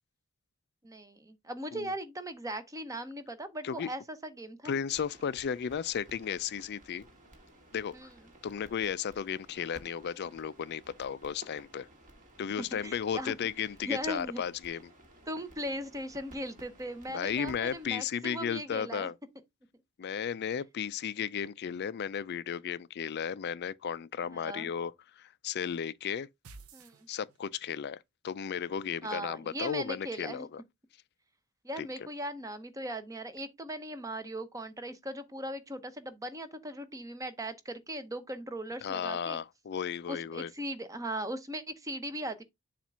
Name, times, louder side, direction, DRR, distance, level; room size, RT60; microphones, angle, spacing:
voice 1, 0.8-4.7 7.9-8.2 12.6-13.3 13.8-14.4 15.3-19.1 24.3-24.7 26.7-26.9 29.0-30.5 31.6-39.4 40.1-42.4, right 1 dB, 15° right, 0.8 m, -39 dB
voice 2, 4.6-7.1 7.7-8.1 8.4-11.9 12.4-14.9 17.1-19.1 20.0-26.3 27.1-28.0 28.2-30.6 31.8-31.9 38.8-40.5, left 7 dB, 50° left, 0.4 m, -34 dB
sound 1, 4.9-17.9, right 1 dB, 40° right, 1.9 m, -56 dB
sound 2, 26.4-27.7, right 3 dB, 80° right, 0.7 m, -52 dB
7.2 x 2.5 x 5.6 m
head